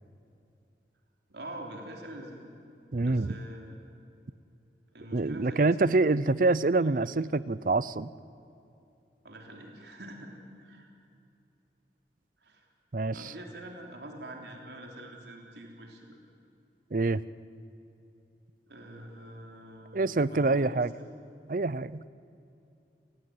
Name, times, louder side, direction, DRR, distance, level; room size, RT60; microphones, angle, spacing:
voice 1, 1.3-2.4 3.0-3.8 4.9-6.3 9.2-10.9 12.4-12.7 13.1-16.2 18.7-21.1, right 1 dB, 75° right, 1 dB, 3.5 m, -45 dB
voice 2, 2.9-3.4 5.1-8.1 12.9-13.3 16.9-17.2 19.9-20.9 21.5-22.0, right 3 dB, 50° right, 18 dB, 0.6 m, -26 dB
29.0 x 16.5 x 9.4 m, 2.6 s
head